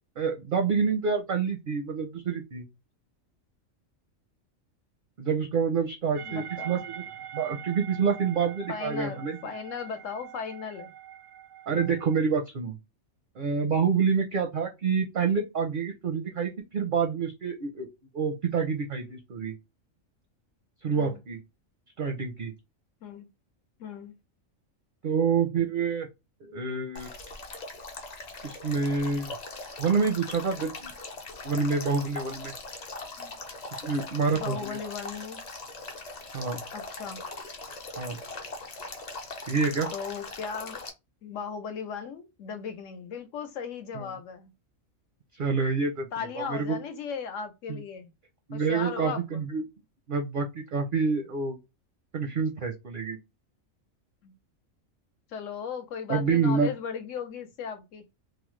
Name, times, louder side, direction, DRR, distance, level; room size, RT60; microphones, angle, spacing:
voice 1, 0.2-2.6 5.2-7.0 7.3-9.4 11.7-12.8 13.4-17.9 18.1-19.5 20.8-21.4 22.0-22.5 25.0-26.1 26.5-27.1 28.4-29.3 29.8-30.9 31.4-32.5 33.8-34.8 36.3-36.6 38.0-38.2 39.5-39.9 43.9-44.1 45.3-46.1 46.4-46.8 47.7-47.8 48.5-49.6 50.1-51.6 52.1-53.2 56.1-56.7, right 5 dB, 55° right, 0.6 m, -27 dB
sound 1, 6.1-12.2, right 10 dB, 85° right, 1.0 m, -43 dB
voice 2, 6.3-6.8 8.7-10.9 20.9-21.2 23.0-23.3 23.8-24.1 33.2-33.4 34.3-35.4 36.7-37.2 39.9-40.8 41.2-44.5 46.1-48.1 48.5-49.5 54.2-54.3 55.3-58.0, left 6 dB, 75° left, 1.0 m, -37 dB
Male speech man speaking / Stream / Trickle dribble, 26.9-40.9, left 3 dB, 45° left, 0.5 m, -40 dB
3.1 x 2.0 x 3.0 m
omnidirectional pair, 1.3 m